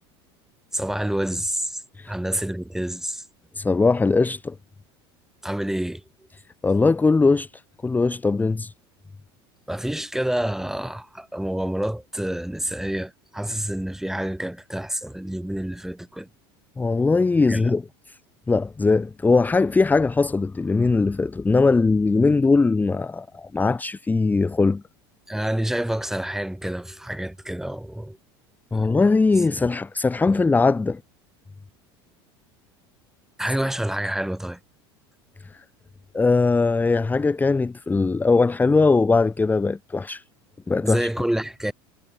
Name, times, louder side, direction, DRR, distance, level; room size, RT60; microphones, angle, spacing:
voice 1, 0.7-3.2 5.4-6.0 9.7-16.3 17.4-17.8 25.3-28.2 28.7-28.9 29.5-29.7 30.3-30.4 33.4-34.6 40.8-41.7, right 1 dB, 5° right, 1.8 m, -28 dB
voice 2, 3.6-4.5 6.6-7.5 7.8-8.7 16.8-17.8 18.1-18.2 18.5-24.8 28.7-31.0 36.1-40.2 40.7-41.1, left 3 dB, 15° left, 0.9 m, -20 dB
hypercardioid pair, 95°, 13 cm